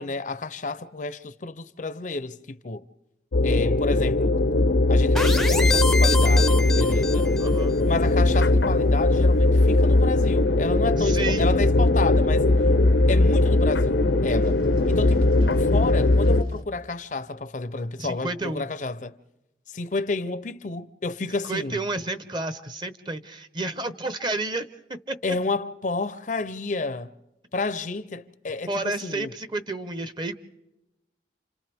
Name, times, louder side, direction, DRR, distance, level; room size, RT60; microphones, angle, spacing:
voice 1, 0.0-2.8 3.4-4.3 4.9-7.3 7.8-12.5 13.1-14.6 14.9-19.2 19.7-21.8 25.2-27.1 27.5-29.3, left 3 dB, 45° left, 0.6 m, -30 dB
sound 1, 3.3-16.4, left 2 dB, 85° left, 0.8 m, -20 dB
sound 2, 5.2-7.6, left 3 dB, ahead, 0.6 m, -27 dB
voice 2, 7.4-7.8 11.0-11.5 18.0-18.7 21.5-24.7 25.1-25.4 28.7-30.4, right 2 dB, 25° right, 0.9 m, -30 dB
sound 3, 7.7-16.6, equal, 45° right, 3.0 m, -42 dB
29.5 x 27.0 x 3.5 m
head